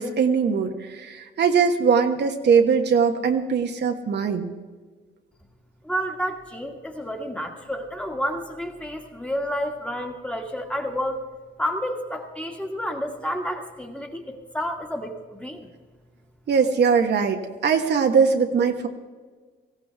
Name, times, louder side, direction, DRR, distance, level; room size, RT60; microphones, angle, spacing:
voice 1, 0.0-4.5 16.5-18.9, right 6 dB, 60° right, 4 dB, 1.3 m, -21 dB
voice 2, 5.8-11.2 11.6-15.7, equal, 5° left, 2 dB, 1.9 m, -30 dB
18.5 x 15.5 x 3.5 m, 1.4 s
cardioid pair, 90°, 20 cm